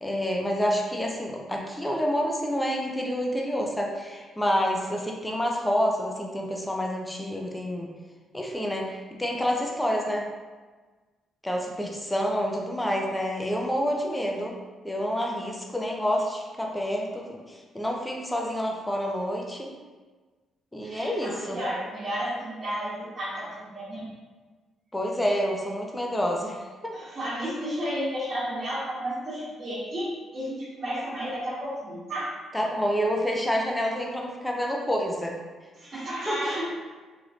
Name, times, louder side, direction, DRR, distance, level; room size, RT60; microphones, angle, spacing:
voice 1, 0.0-7.9 8.3-10.3 11.4-14.5 14.8-19.7 20.7-21.6 24.9-27.0 32.5-35.4 35.9-36.4, equal, 10° left, 0 dB, 0.5 m, -28 dB
voice 2, 20.8-24.0 26.9-32.4 35.8-36.9, equal, 35° right, -13 dB, 1.2 m, -32 dB
3.1 x 3.0 x 2.5 m, 1.3 s
cardioid pair, 90°, 0 cm